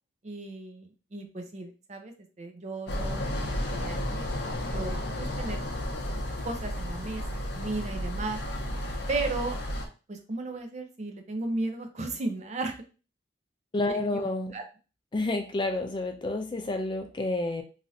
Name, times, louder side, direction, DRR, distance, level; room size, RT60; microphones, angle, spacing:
voice 1, 0.2-3.3 3.7-4.3 4.7-5.6 6.4-8.4 9.1-9.6 10.1-12.8 13.9-14.6, right 2 dB, 35° right, 5 dB, 0.5 m, -35 dB
sound 1, 2.9-9.9, left 1 dB, 60° left, 0.7 m, -32 dB
voice 2, 13.7-14.5 15.1-17.6, left 2 dB, 25° left, 5 dB, 0.4 m, -29 dB
3.1 x 2.5 x 2.6 m, 0.33 s
head